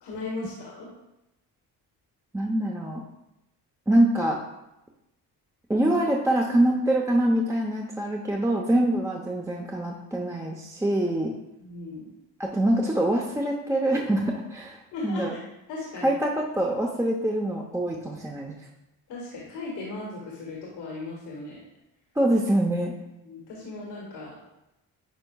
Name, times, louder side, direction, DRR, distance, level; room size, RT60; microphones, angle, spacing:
voice 1, 0.0-0.9 11.6-12.1 14.9-15.4 15.7-16.1 19.1-21.6 23.2-24.4, left 3 dB, 85° left, -4 dB, 1.9 m, -37 dB
voice 2, 2.3-3.0 3.9-4.4 5.7-11.3 12.4-14.8 15.0-15.3 16.0-18.6 22.2-22.9, right 1 dB, 5° right, -1 dB, 0.7 m, -24 dB
10.0 x 4.3 x 2.3 m, 0.91 s
supercardioid pair, 70°, 40 cm